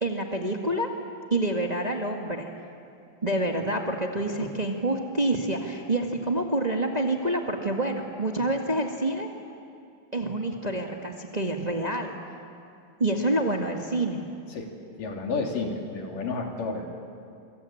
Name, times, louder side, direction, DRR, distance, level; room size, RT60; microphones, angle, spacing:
voice 1, 0.0-0.9 1.3-2.5 3.2-9.3 10.1-12.1 13.0-14.2, right 1 dB, 35° right, 2 dB, 0.6 m, -27 dB
voice 2, 15.0-16.9, left 4 dB, 70° left, 2 dB, 4.5 m, -31 dB
27.5 x 24.0 x 8.6 m, 2.5 s
omnidirectional pair, 3.9 m